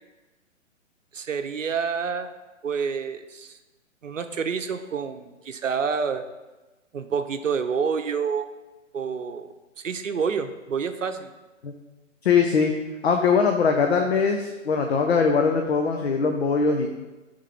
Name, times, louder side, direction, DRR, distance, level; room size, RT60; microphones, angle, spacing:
voice 1, 1.1-2.3 2.6-3.6 4.0-6.2 6.9-8.5 8.9-11.3, right 6 dB, 80° right, 8 dB, 0.7 m, -28 dB
voice 2, 12.2-12.7 13.0-16.9, left 5 dB, 55° left, 2 dB, 0.7 m, -21 dB
11.0 x 3.7 x 3.4 m, 1.1 s
figure-of-eight pair, 130°, 38 cm